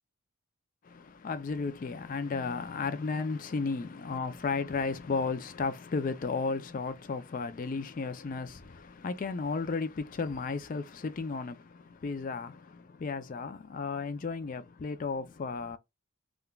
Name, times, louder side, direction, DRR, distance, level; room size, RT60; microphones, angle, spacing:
voice 1, 0.8-15.8, left 4 dB, 40° left, 0.3 m, -34 dB
3.6 x 2.2 x 2.2 m
head